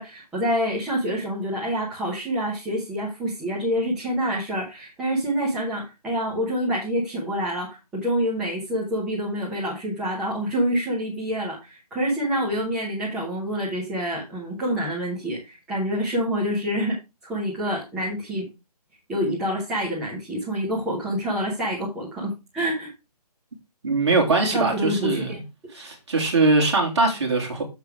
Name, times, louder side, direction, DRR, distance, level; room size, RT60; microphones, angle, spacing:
voice 1, 0.0-17.0 17.2-18.4 19.1-22.9 24.5-25.4, equal, 5° right, 1.0 m, -27 dB
voice 2, 23.8-25.4 25.7-27.6, right 3 dB, 45° right, 3.0 m, -21 dB
7.1 x 6.6 x 4.6 m
hypercardioid pair, 175°, 20 cm